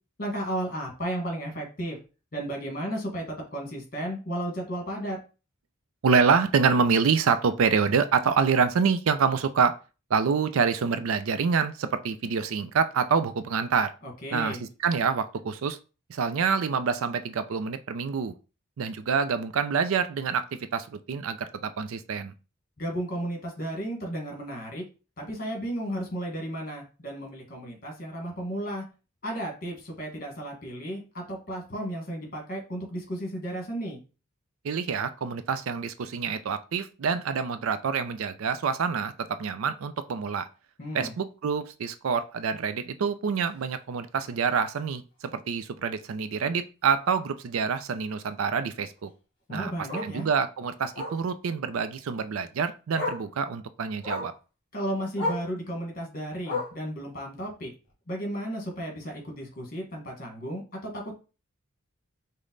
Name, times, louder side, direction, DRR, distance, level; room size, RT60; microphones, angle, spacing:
voice 1, 0.2-2.0 2.3-5.2 14.0-14.6 22.8-24.8 25.2-28.8 29.2-34.0 40.8-41.1 49.5-50.3 54.7-57.7 58.1-61.1, right 1 dB, 45° left, 1 dB, 1.5 m, -34 dB
voice 2, 6.0-9.7 10.1-13.9 14.3-14.6 14.8-15.8 16.1-18.3 18.8-22.3 34.6-40.5 40.9-49.1 49.5-49.7 50.0-54.3, right 6 dB, 75° right, 11 dB, 0.4 m, -26 dB
Bark, 43.4-43.6 44.0-44.1 44.5-44.6 44.9-45.0 46.4-46.5 49.0-49.1 49.9-50.2 50.9-51.2 52.4-52.5 52.9-53.3 54.0-54.4 55.1-55.5 56.4-56.9 57.9-58.0, left 2 dB, 25° left, 2.0 m, -32 dB
5.1 x 2.1 x 3.8 m, 0.33 s
head